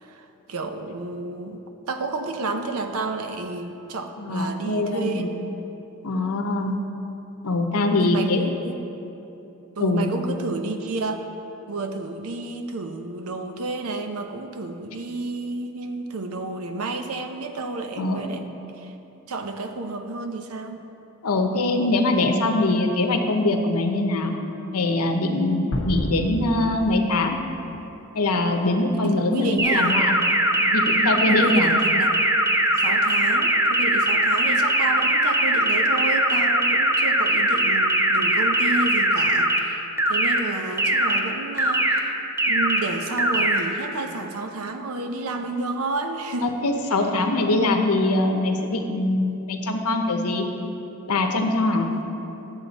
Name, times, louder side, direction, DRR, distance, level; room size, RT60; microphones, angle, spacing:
voice 1, 0.0-1.6 1.9-5.3 6.2-6.3 8.0-8.7 9.8-11.2 11.7-18.5 18.7-18.9 19.3-20.8 29.0-30.0 31.3-32.3 32.8-46.5, right 3 dB, 80° right, 6 dB, 0.7 m, -31 dB
voice 2, 4.2-5.3 6.0-6.8 7.4-8.4 9.8-10.0 18.0-18.3 21.2-24.4 24.7-27.4 28.1-30.1 30.7-31.7 46.4-50.5 51.1-51.9, left 2 dB, 90° left, 4 dB, 0.8 m, -23 dB
sound 1, 25.7-28.1, left 1 dB, 55° left, 1.1 m, -31 dB
sound 2, 29.6-39.6 40.0-40.4 40.8-41.2 41.6-42.0 42.4-42.8 43.2-43.6, right 1 dB, 10° right, 0.4 m, -20 dB
11.0 x 7.3 x 4.1 m, 3.0 s
head